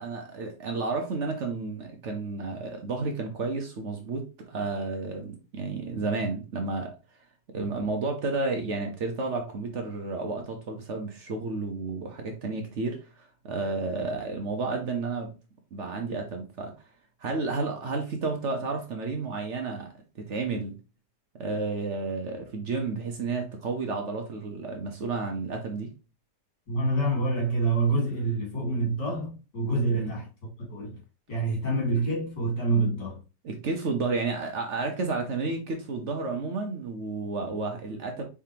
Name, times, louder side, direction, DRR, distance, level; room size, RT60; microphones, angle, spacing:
voice 1, 0.0-6.9 7.5-15.3 15.7-16.7 17.2-19.9 20.2-20.8 21.4-25.9 29.9-30.1 33.4-38.2, right 3 dB, 55° right, 0.9 m, -31 dB
voice 2, 26.7-30.3 30.7-31.0 31.3-33.2, right 2 dB, 85° left, 2.9 m, -27 dB
4.6 x 3.6 x 2.8 m
omnidirectional pair, 1.9 m